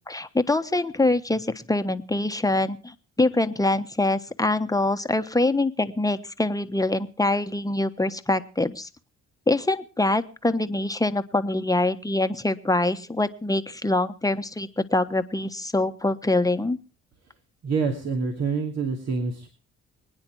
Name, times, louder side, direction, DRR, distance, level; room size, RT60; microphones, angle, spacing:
voice 1, 0.1-8.9 9.5-16.8, left 2 dB, 10° left, 8 dB, 1.2 m, -24 dB
voice 2, 17.6-19.5, right 5 dB, 60° right, 2 dB, 2.7 m, -26 dB
24.5 x 9.7 x 4.7 m, 0.36 s
cardioid pair, 90°, 30 cm